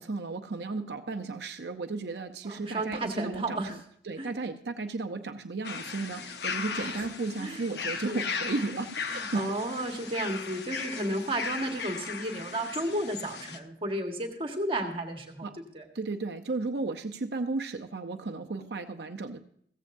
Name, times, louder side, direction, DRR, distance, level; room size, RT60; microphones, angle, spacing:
voice 1, 0.0-3.8 4.0-9.4 15.4-15.6 15.9-19.4, right 3 dB, 65° right, 6 dB, 0.7 m, -34 dB
voice 2, 2.4-3.8 4.2-4.3 6.7-7.1 7.4-7.6 7.9-8.3 9.1-15.5 15.7-15.9, right 1 dB, 30° right, 3 dB, 1.5 m, -33 dB
sound 1, 5.6-13.6, left 5 dB, 65° left, 0.9 m, -37 dB
15.5 x 14.5 x 2.6 m, 0.66 s
head